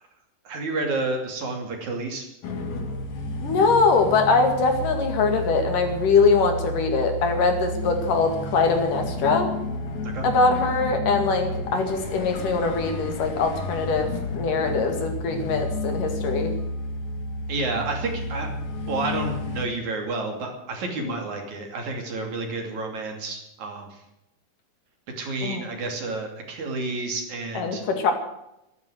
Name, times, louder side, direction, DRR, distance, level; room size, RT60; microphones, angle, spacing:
voice 1, 0.5-2.3 10.1-10.2 17.5-18.5 18.9-23.9 25.2-27.8, right 3 dB, 60° right, 3 dB, 4.1 m, -30 dB
sound 1, 2.4-19.7, left 2 dB, 60° left, 3.1 m, -31 dB
voice 2, 3.4-9.5 10.2-16.5 21.0-21.2 25.4-25.6 27.5-28.1, left 4 dB, 75° left, 5 dB, 3.8 m, -22 dB
13.5 x 12.5 x 8.0 m, 0.85 s
omnidirectional pair, 3.8 m